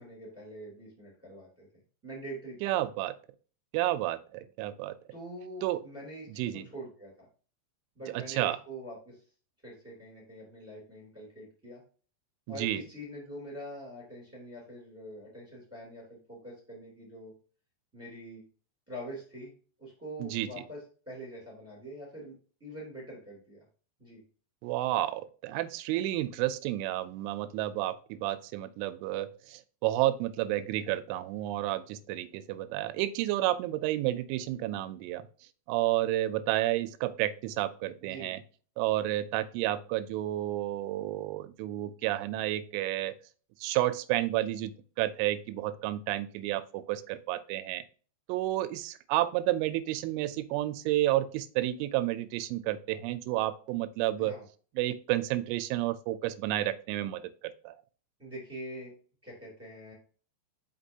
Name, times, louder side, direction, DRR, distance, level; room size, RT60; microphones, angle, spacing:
voice 1, 0.0-1.7 2.0-2.8 5.1-7.1 7.9-9.2 9.6-11.8 12.5-17.3 17.9-18.4 18.9-19.5 19.8-22.3 22.6-23.6 24.0-24.2 38.0-38.3 54.2-54.4 58.2-58.9 59.2-59.9, right 1 dB, 5° right, -4 dB, 2.2 m, -44 dB
voice 2, 2.6-3.2 3.7-5.0 5.6-5.8 6.3-6.7 8.1-8.6 12.5-12.8 20.2-20.5 24.6-35.3 35.7-38.4 38.8-43.1 43.6-44.7 45.0-47.8 48.3-54.3 54.8-57.2 57.6-57.7, right 15 dB, 90° right, 13 dB, 3.0 m, -31 dB
5.9 x 5.8 x 2.7 m, 0.39 s
omnidirectional pair, 5.5 m